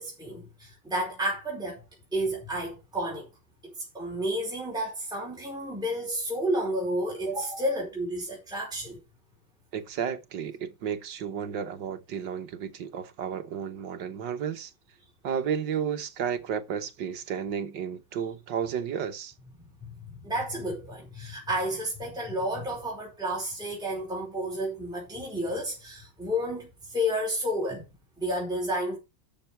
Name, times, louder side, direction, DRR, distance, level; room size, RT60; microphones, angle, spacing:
voice 1, 0.0-1.8 2.1-3.3 3.6-9.0 20.2-27.8 28.2-29.0, equal, ahead, 4.6 m, -31 dB
voice 2, 9.7-14.7 15.2-19.3, right 8 dB, 65° right, 1.7 m, -32 dB
13.5 x 6.6 x 4.5 m
omnidirectional pair, 2.2 m